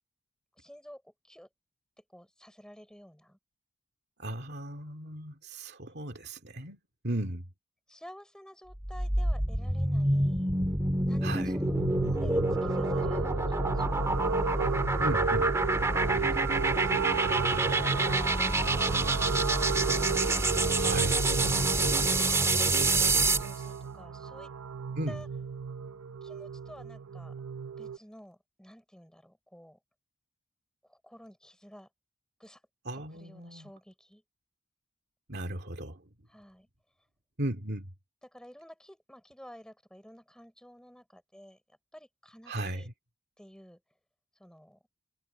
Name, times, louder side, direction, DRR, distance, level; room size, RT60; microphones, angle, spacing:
voice 1, 0.6-1.5 2.1-3.4 7.1-7.2 7.9-10.5 11.1-14.1 16.0-21.1 23.1-24.5 25.1-25.3 26.2-27.4 27.8-29.8 30.8-31.9 32.4-32.6 33.1-34.2 36.3-36.7 38.2-41.6 41.9-42.9 43.4-43.8 44.4-44.8, equal, 5° left, 6.3 m, -52 dB
voice 2, 4.2-6.8 7.0-7.4 11.2-11.6 15.0-15.5 20.8-21.2 25.0-25.2 32.9-33.7 35.3-36.0 37.4-37.9 42.5-42.8, right 1 dB, 50° right, 2.5 m, -36 dB
sound 1, 8.8-23.5, right 2 dB, 15° right, 1.8 m, -27 dB
sound 2, 11.6-28.0, right 6 dB, 80° right, 0.7 m, -34 dB
head